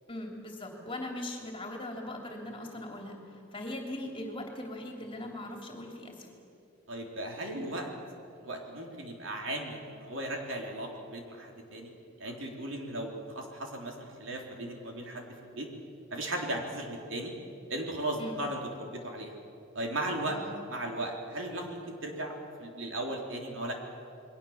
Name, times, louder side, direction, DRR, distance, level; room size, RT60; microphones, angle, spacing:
voice 1, 0.1-3.2 3.5-6.3 18.2-18.4 20.3-20.6, left 1 dB, 25° left, 2 dB, 3.2 m, -40 dB
voice 2, 6.9-7.9 8.4-11.9 12.2-15.7 16.1-17.3 17.7-19.4 19.8-20.4 20.7-22.3 22.6-23.7, right 1 dB, 60° right, 1 dB, 3.6 m, -36 dB
29.0 x 22.0 x 7.3 m, 2.6 s
head